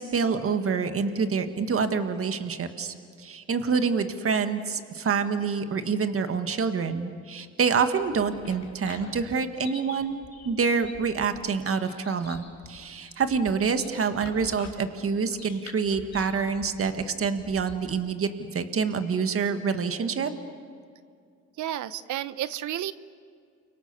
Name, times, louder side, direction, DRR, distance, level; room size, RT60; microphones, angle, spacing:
voice 1, 0.0-10.2 10.4-20.3, right 5 dB, 45° right, 8 dB, 1.9 m, -27 dB
sound 1, 7.8-18.1, left 5 dB, 60° left, 6.1 m, -47 dB
voice 2, 21.6-22.9, right 12 dB, 75° right, 15 dB, 0.9 m, -31 dB
29.5 x 24.0 x 7.0 m, 2.2 s
cardioid pair, 90°, 30 cm